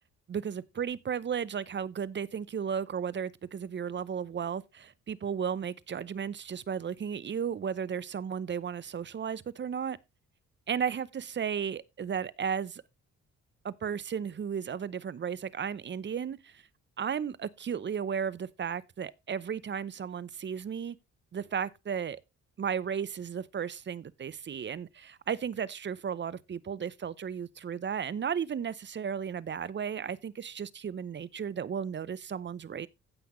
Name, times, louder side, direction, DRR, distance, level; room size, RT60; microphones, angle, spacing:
voice 1, 0.3-10.0 10.7-12.8 13.6-16.6 17.0-21.0 21.3-22.2 22.6-32.9, right 7 dB, 35° right, 0.7 m, -34 dB
16.0 x 5.7 x 3.1 m
cardioid pair, 90°, 30 cm